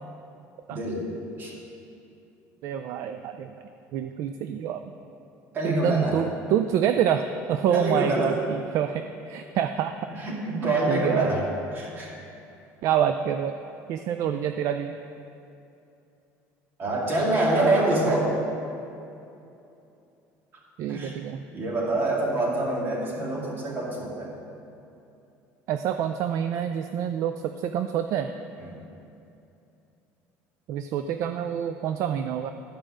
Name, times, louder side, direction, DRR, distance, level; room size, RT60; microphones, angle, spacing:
voice 1, 0.7-1.1 1.4-1.5 5.5-6.2 7.7-8.4 10.1-12.2 16.8-18.3 20.9-21.1 21.5-24.3 28.6-28.8, right 2 dB, 35° right, -3 dB, 2.2 m, -26 dB
voice 2, 2.6-3.5 3.9-4.8 5.6-9.9 10.6-11.3 12.8-13.5 13.9-15.0 20.8-21.4 25.7-28.3 30.7-32.5, right 9 dB, 55° right, 8 dB, 0.4 m, -27 dB
12.0 x 5.0 x 6.3 m, 2.7 s
cardioid pair, 140°, 6 cm